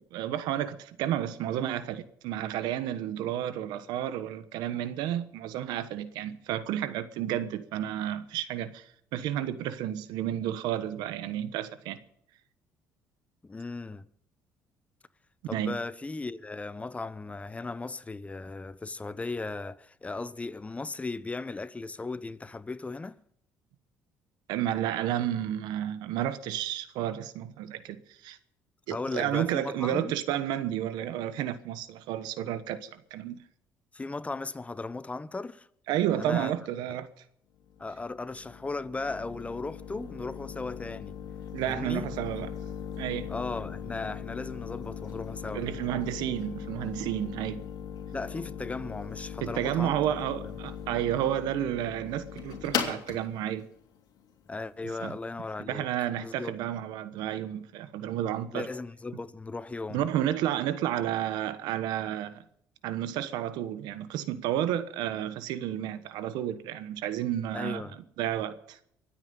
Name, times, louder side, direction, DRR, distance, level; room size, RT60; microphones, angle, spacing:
voice 1, 0.0-12.0 15.5-15.8 24.5-28.4 28.9-33.4 35.9-37.1 41.5-42.5 43.0-43.3 45.5-47.6 49.4-53.7 55.0-55.2 55.6-58.7 59.9-62.4 62.8-67.8 68.2-68.8, right 11 dB, 85° right, 1.2 m, -31 dB
voice 2, 13.4-14.0 15.5-23.2 28.9-30.1 33.9-35.7 36.2-36.5 37.8-41.2 41.6-42.1 43.3-45.7 48.1-50.0 54.5-55.9 56.2-56.5 58.5-60.0 67.5-67.9, left 3 dB, 20° left, 0.8 m, -36 dB
sound 1, 37.6-55.3, left 8 dB, 65° left, 3.1 m, -39 dB
23.5 x 9.0 x 5.4 m
cardioid pair, 95°, 7 cm